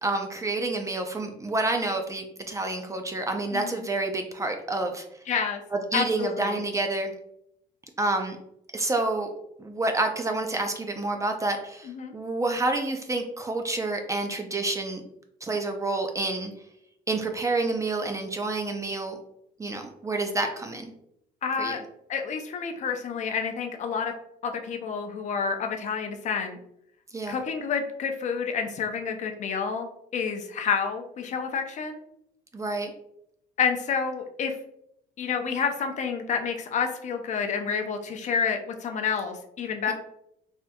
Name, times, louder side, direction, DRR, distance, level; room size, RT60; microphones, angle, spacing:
voice 1, 0.0-5.0 5.7-7.1 8.0-8.4 8.7-9.3 9.6-15.0 15.4-16.5 17.1-19.2 19.6-20.9 21.6-21.8 27.1-27.4 32.5-32.9 39.9-40.0, right 2 dB, 20° right, 4 dB, 0.4 m, -28 dB
voice 2, 3.5-3.8 5.3-5.6 5.9-6.6 11.9-12.1 21.4-21.8 22.1-24.1 24.4-26.6 27.3-29.9 30.1-32.0 33.6-34.6 35.2-39.9, left 6 dB, 45° left, 5 dB, 0.4 m, -29 dB
3.4 x 2.6 x 2.2 m, 0.77 s
cardioid pair, 110°, 17 cm